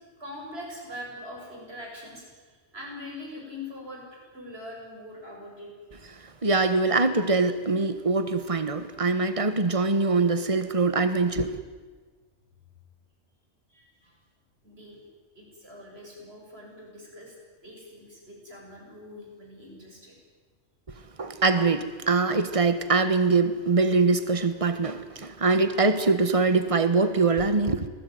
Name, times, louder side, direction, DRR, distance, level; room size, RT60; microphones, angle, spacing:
voice 1, 0.2-5.7 13.7-14.2 14.6-15.0 15.4-17.4 17.6-20.2, left 1 dB, 55° right, 7.3 m, -43 dB
voice 2, 6.1-11.6 21.2-27.9, right 3 dB, 30° right, 1.6 m, -23 dB
26.5 x 20.0 x 9.6 m
omnidirectional pair, 1.2 m